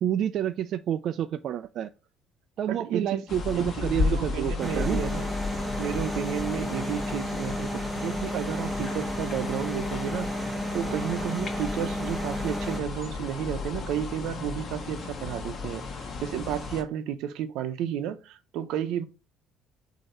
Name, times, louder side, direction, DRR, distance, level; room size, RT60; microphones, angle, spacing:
voice 1, 0.0-1.9 2.6-5.0, right 10 dB, 55° right, 0.3 m, -29 dB
voice 2, 2.7-3.2 3.5-5.3 5.8-19.0, right 10 dB, 80° right, 0.7 m, -32 dB
sound 1, 3.3-16.8, left 4 dB, 40° left, 1.2 m, -34 dB
sound 2, 4.6-12.8, equal, 5° right, 0.7 m, -32 dB
7.8 x 2.8 x 4.3 m
cardioid pair, 140°, 0 cm